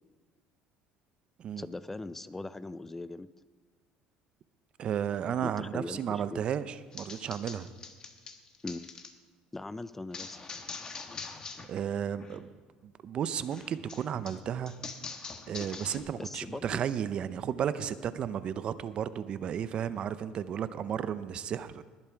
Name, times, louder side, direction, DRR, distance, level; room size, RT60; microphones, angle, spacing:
voice 1, 1.6-3.3 5.4-6.4 8.6-8.9 9.5-10.5 11.2-11.4 16.2-16.8, left 2 dB, 10° left, 16 dB, 0.4 m, -40 dB
voice 2, 4.8-7.7 11.7-12.5 12.8-14.7 15.5-21.8, right 9 dB, 45° right, 14 dB, 0.6 m, -33 dB
sound 1, 6.9-9.1 10.1-11.7 12.0-12.4 13.5-16.0, left 4 dB, 30° left, 1.2 m, -43 dB
20.0 x 7.4 x 4.5 m, 1.5 s
supercardioid pair, 105°, 2 cm